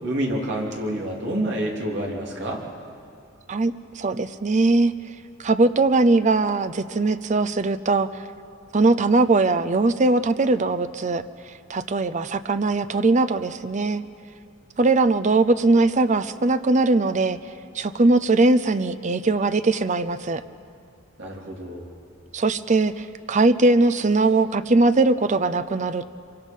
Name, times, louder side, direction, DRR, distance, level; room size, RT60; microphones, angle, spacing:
voice 1, 0.0-2.6 21.2-21.9, right 1 dB, 60° right, -1 dB, 3.2 m, -28 dB
voice 2, 3.5-4.9 5.4-8.2 8.7-11.2 11.7-14.0 14.8-17.4 17.7-20.4 22.3-26.0, right 3 dB, 35° right, 13 dB, 0.6 m, -20 dB
26.0 x 24.5 x 5.4 m, 2.4 s
head